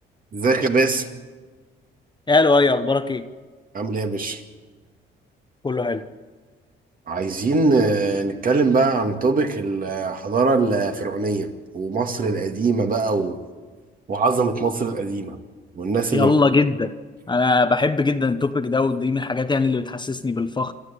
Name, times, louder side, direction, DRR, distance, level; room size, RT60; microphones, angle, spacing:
voice 1, 0.3-1.1 3.7-4.4 7.1-13.4 14.1-15.4 15.8-16.3, right 3 dB, 45° right, 2.2 m, -22 dB
voice 2, 2.3-3.3 5.6-6.0 16.1-16.9 17.3-20.7, left 3 dB, 20° left, 1.0 m, -20 dB
27.5 x 13.0 x 8.4 m
cardioid pair, 90°, 20 cm